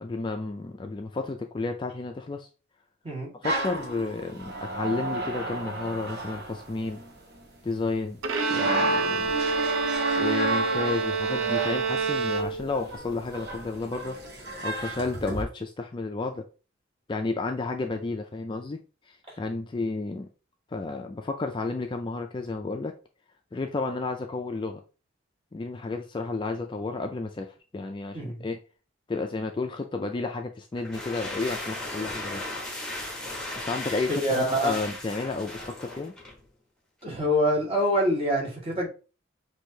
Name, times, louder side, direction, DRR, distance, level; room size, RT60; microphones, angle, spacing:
voice 1, 0.0-2.5 3.4-7.0 7.6-8.2 8.5-9.4 10.2-14.2 14.6-16.5 17.1-18.8 19.1-20.3 20.7-22.9 23.5-24.8 25.5-28.6 29.1-32.4 33.7-36.1, left 3 dB, 25° left, 0.3 m, -32 dB
sound 1, 3.4-7.4 8.3-15.4, right 2 dB, 55° right, 1.3 m, -32 dB
Bowed string instrument, 8.2-12.9, right 4 dB, 80° right, 0.6 m, -28 dB
voice 2, 28.1-28.5 34.1-34.7 37.0-38.9, equal, 30° right, 1.5 m, -25 dB
sound 2, 30.7-36.5, left 1 dB, 5° left, 1.0 m, -37 dB
6.1 x 2.7 x 2.7 m
head